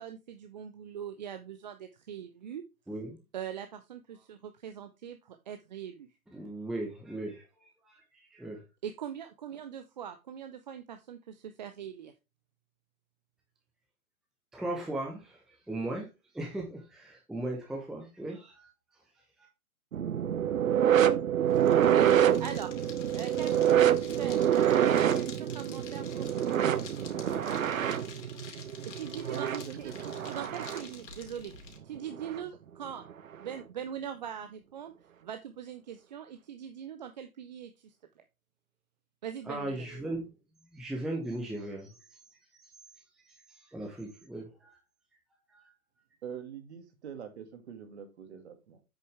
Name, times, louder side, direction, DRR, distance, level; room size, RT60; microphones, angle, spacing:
voice 1, 0.0-2.6 3.3-6.1 8.8-12.1 21.9-22.7 23.1-26.8 28.9-29.5 29.8-29.9 30.2-31.5 31.8-33.0 33.4-34.9 35.2-37.9 39.2-40.1, right 9 dB, 30° right, 8 dB, 0.6 m, -41 dB
voice 2, 6.3-8.0 8.3-8.6 14.5-15.4 15.7-16.1 16.3-18.7 39.5-40.3 40.7-41.9 42.5-42.6 43.2-43.3 43.7-44.8 45.5-45.6, right 1 dB, ahead, 0 dB, 0.8 m, -37 dB
sound 1, 19.9-30.9 32.2-32.4 33.3-33.4, right 10 dB, 65° right, 0.9 m, -26 dB
sound 2, 21.5-31.8, left 5 dB, 55° left, 2.6 m, -49 dB
voice 3, 29.3-30.1 46.2-48.8, right 8 dB, 50° right, 7 dB, 2.3 m, -43 dB
8.1 x 6.7 x 3.4 m, 0.27 s
figure-of-eight pair, 135°, 43 cm